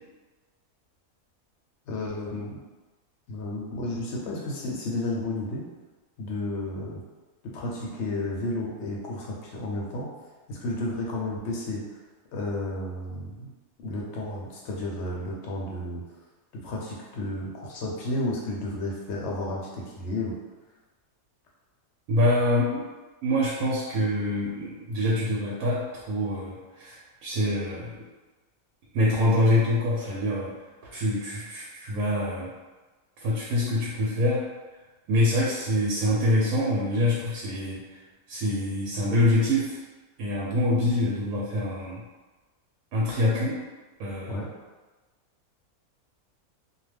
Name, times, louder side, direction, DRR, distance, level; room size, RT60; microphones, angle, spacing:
voice 1, 1.9-2.6 3.3-5.6 6.2-7.0 7.5-10.1 10.5-11.8 12.3-13.5 13.8-16.0 16.6-20.3 44.3-44.5, left 1 dB, 65° left, -3 dB, 0.8 m, -32 dB
voice 2, 22.1-22.9 23.2-28.1 28.9-30.5 30.9-32.5 33.2-34.5 35.1-37.8 38.3-39.8 40.2-42.0 42.9-43.6 44.0-44.5, left 1 dB, 85° right, -5 dB, 1.1 m, -25 dB
2.4 x 2.1 x 3.2 m, 1.2 s
omnidirectional pair, 1.5 m